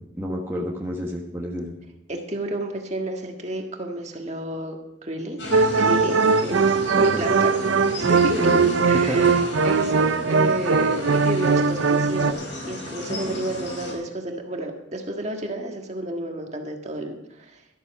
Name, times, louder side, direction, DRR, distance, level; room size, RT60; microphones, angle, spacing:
voice 1, 0.2-1.8 7.0-7.2 8.1-8.8 9.1-9.2, left 1 dB, 10° right, -2 dB, 1.3 m, -29 dB
voice 2, 2.1-5.4 5.8-7.6 8.0-17.6, right 1 dB, 35° right, 3 dB, 1.7 m, -31 dB
sound 1, 5.4-13.9, left 1 dB, 70° left, 5.0 m, -35 dB
sound 2, 5.5-12.3, right 4 dB, 85° right, 0.6 m, -20 dB
13.0 x 12.5 x 4.8 m, 0.92 s
head